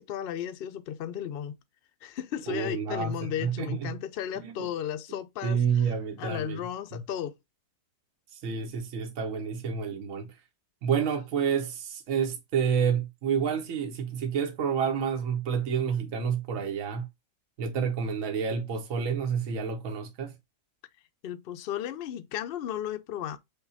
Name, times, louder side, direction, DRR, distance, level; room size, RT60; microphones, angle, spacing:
voice 1, 0.0-1.6 2.0-5.6 6.2-7.3 21.2-23.4, left 10 dB, 90° left, 0.5 m, -34 dB
voice 2, 2.5-3.9 4.4-4.7 5.4-6.6 6.9-7.0 8.3-10.4 10.8-17.1 17.6-20.3, right 7 dB, 65° right, 1.1 m, -29 dB
5.5 x 2.2 x 4.0 m
omnidirectional pair, 1.7 m